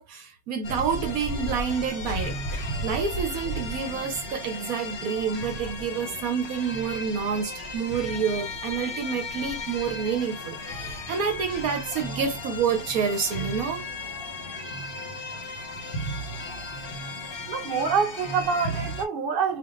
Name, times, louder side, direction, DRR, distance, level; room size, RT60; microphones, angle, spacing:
voice 1, 0.0-2.3 2.8-13.9, right 6 dB, 75° right, 1.1 m, -28 dB
sound 1, 0.6-19.0, left 1 dB, 40° left, 0.9 m, -35 dB
voice 2, 17.5-19.6, right 6 dB, 45° right, 1.0 m, -26 dB
3.5 x 2.5 x 3.7 m
omnidirectional pair, 1.6 m